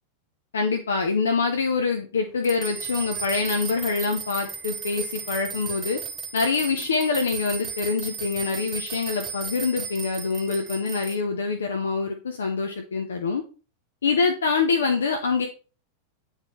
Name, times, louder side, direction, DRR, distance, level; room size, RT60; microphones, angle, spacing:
voice 1, 0.5-6.0 6.3-13.4 14.0-15.5, left 4 dB, 70° left, 4 dB, 0.6 m, -25 dB
sound 1, 2.4-11.2, right 6 dB, 20° right, 1.1 m, -35 dB
9.0 x 3.7 x 3.1 m, 0.36 s
figure-of-eight pair, 90°, 0 cm